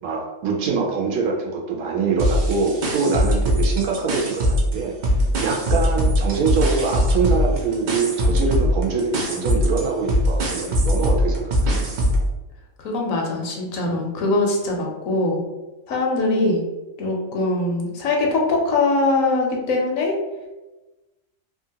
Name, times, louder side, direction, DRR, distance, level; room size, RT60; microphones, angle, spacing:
voice 1, 0.0-4.9 5.4-11.9, right 4 dB, 85° right, 0 dB, 1.1 m, -24 dB
sound 1, 2.2-4.8 5.0-12.3, equal, 65° right, 0.4 m, -21 dB
voice 2, 12.8-15.4 15.9-16.6 17.0-20.2, left 2 dB, 80° left, 0 dB, 1.0 m, -22 dB
2.9 x 2.4 x 2.7 m, 1.1 s
omnidirectional pair, 1.4 m